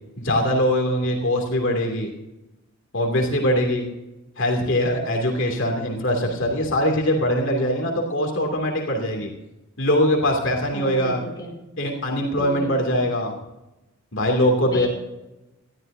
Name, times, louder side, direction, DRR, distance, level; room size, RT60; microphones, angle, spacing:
voice 1, 0.2-2.1 2.9-3.9 4.4-9.3 9.8-11.2 11.8-13.4 14.1-14.9, equal, 55° left, 1 dB, 2.6 m, -22 dB
voice 2, 10.7-11.6 12.4-12.8 14.6-14.9, equal, 20° left, -4 dB, 3.4 m, -33 dB
20.5 x 13.5 x 2.7 m, 0.97 s
head